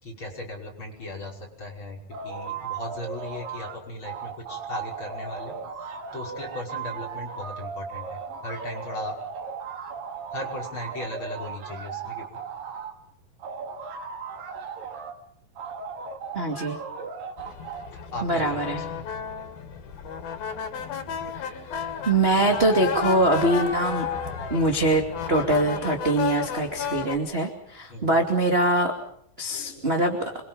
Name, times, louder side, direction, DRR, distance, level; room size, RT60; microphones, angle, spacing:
voice 1, 0.0-5.6 6.1-9.2 10.3-12.3 17.9-19.1 27.9-28.2 29.5-29.9, left 1 dB, 35° left, 0 dB, 6.5 m, -37 dB
sound 1, 2.1-3.8 4.0-12.9 13.4-15.2 15.6-17.9, right 6 dB, 70° right, 4.2 m, -36 dB
voice 2, 16.3-16.8 18.2-18.8 21.3-21.5 22.1-24.1 24.5-25.0 25.3-28.9 29.4-30.2, right 1 dB, 20° right, 2 dB, 2.3 m, -23 dB
sound 2, 17.4-27.2, left 6 dB, 90° left, 4.4 m, -33 dB
27.5 x 24.5 x 5.6 m, 0.65 s
omnidirectional pair, 4.1 m